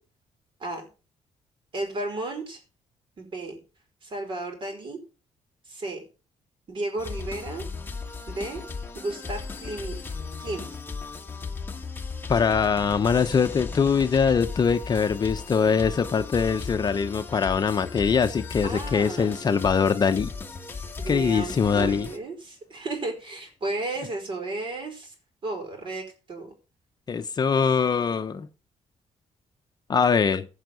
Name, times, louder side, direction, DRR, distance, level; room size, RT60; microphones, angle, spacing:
voice 1, 1.7-2.6 3.2-3.6 4.0-5.0 5.6-6.0 6.7-7.6 8.3-8.6 8.9-10.0 10.4-10.7 18.6-19.3 21.0-25.1 25.4-26.5, right 2 dB, 45° right, 5 dB, 4.6 m, -33 dB
sound 1, 7.0-22.2, left 4 dB, 15° left, 1.3 m, -36 dB
voice 2, 12.3-20.3 21.1-22.1 27.1-28.5 29.9-30.5, left 6 dB, 35° left, 8 dB, 0.8 m, -23 dB
15.5 x 5.7 x 5.2 m, 0.34 s
cardioid pair, 135°, 12 cm